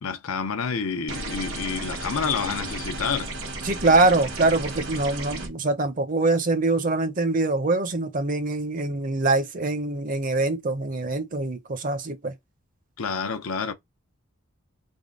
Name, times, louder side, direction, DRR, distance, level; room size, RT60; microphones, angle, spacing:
voice 1, 0.0-3.3 13.0-13.7, left 6 dB, 80° left, 0.6 m, -28 dB
sound 1, 1.1-5.5, right 2 dB, 70° right, 1.2 m, -34 dB
voice 2, 3.6-12.3, right 2 dB, 40° right, 0.6 m, -24 dB
3.5 x 2.2 x 3.7 m
head